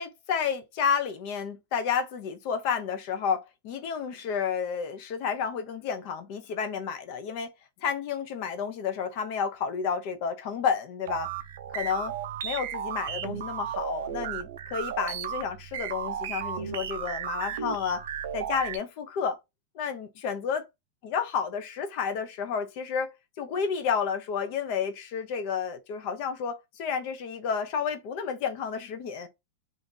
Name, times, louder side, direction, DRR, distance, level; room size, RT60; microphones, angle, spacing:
voice 1, 0.0-7.5 7.8-11.3 11.7-12.2 12.4-18.0 18.3-19.4 19.7-20.6 21.0-23.1 23.4-29.3, left 6 dB, 40° left, 0.6 m, -31 dB
sound 1, 11.1-18.8, right 9 dB, 75° right, 0.4 m, -34 dB
2.8 x 2.5 x 3.6 m
supercardioid pair, 175°, 0 cm